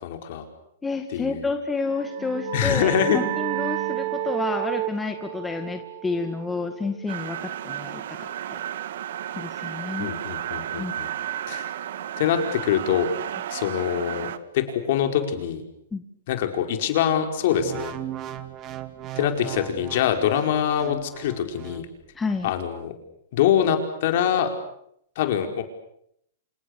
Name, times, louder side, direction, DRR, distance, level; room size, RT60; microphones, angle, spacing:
voice 1, 0.0-0.4 1.1-1.5 2.5-3.2 10.0-11.1 11.5-11.6 12.2-13.1 13.5-15.6 16.3-17.9 19.2-21.9 22.4-23.0 23.3-24.5 25.2-25.6, left 9 dB, 55° left, 6 dB, 5.0 m, -24 dB
voice 2, 0.8-8.6 9.4-10.1 10.8-10.9 15.9-16.0 22.2-22.5, left 4 dB, 10° left, 5 dB, 1.9 m, -30 dB
sound 1, 1.9-7.2, right 19 dB, 45° right, 1.2 m, -31 dB
sound 2, 7.1-14.4, right 11 dB, 65° right, 1.8 m, -33 dB
sound 3, 17.5-21.8 22.4-22.6, right 12 dB, 30° right, 2.1 m, -37 dB
28.0 x 28.0 x 6.8 m, 0.74 s
hypercardioid pair, 150°, 0 cm